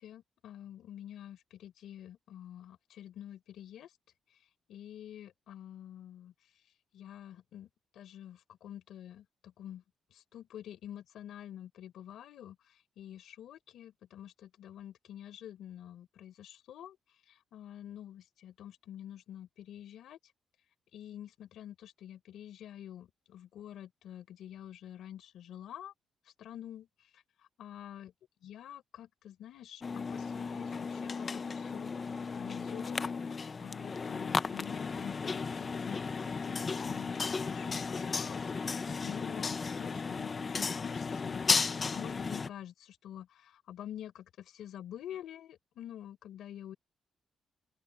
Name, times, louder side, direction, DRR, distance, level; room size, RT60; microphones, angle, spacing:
voice 1, 0.0-3.9 4.7-6.3 6.9-9.8 10.1-17.0 17.5-20.2 20.9-25.9 26.4-26.9 27.1-27.2 27.6-28.1 28.4-38.5 39.0-46.8, left 11 dB, 75° left, 4.0 m, -48 dB
sound 1, 29.8-42.5, left 5 dB, 25° left, 0.6 m, -35 dB
open air
cardioid pair, 165°, 0 cm